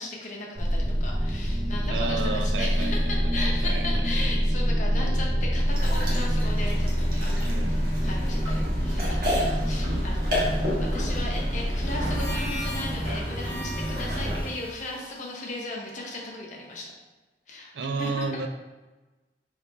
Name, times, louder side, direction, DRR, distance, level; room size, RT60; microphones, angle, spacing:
voice 1, 0.0-10.4 10.8-16.9 17.5-18.2, left 2 dB, 45° left, -1 dB, 0.8 m, -36 dB
sound 1, 0.6-14.4, equal, 10° right, 0.6 m, -26 dB
voice 2, 1.9-2.9 3.6-3.9 7.4-7.8 17.7-18.5, right 4 dB, 75° right, 6 dB, 0.4 m, -31 dB
sound 2, 5.7-14.5, left 1 dB, 55° right, 1.2 m, -34 dB
Harmonica, 12.0-16.6, equal, 25° left, 1.1 m, -41 dB
3.5 x 3.3 x 4.1 m, 1.2 s
head